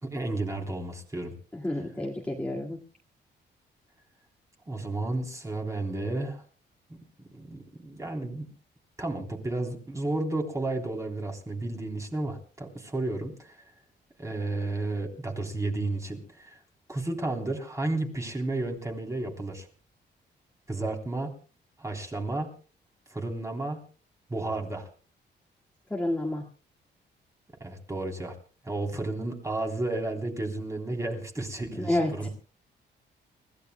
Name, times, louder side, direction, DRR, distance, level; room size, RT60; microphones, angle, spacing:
voice 1, 0.0-1.3 4.7-6.4 7.3-8.5 9.0-13.6 14.2-16.6 16.9-19.7 20.7-21.3 21.8-22.5 23.1-23.8 24.3-24.9 27.6-28.3 28.6-32.3, right 2 dB, 15° right, 2 dB, 3.3 m, -32 dB
voice 2, 1.5-2.8 25.9-26.4 31.7-32.3, left 1 dB, 5° left, -3 dB, 1.9 m, -29 dB
30.0 x 15.5 x 2.2 m, 0.37 s
cardioid pair, 130°, 19 cm